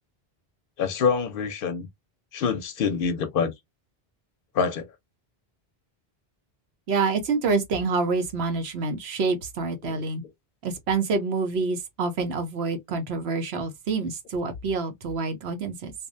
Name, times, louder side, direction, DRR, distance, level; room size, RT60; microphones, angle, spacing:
voice 1, 0.8-1.9 2.3-3.5 4.5-4.9 9.8-10.0, left 6 dB, 65° left, 0.7 m, -26 dB
voice 2, 6.9-10.2 10.6-15.9, right 4 dB, 80° right, 1.0 m, -27 dB
2.6 x 2.1 x 2.4 m
omnidirectional pair, 1.0 m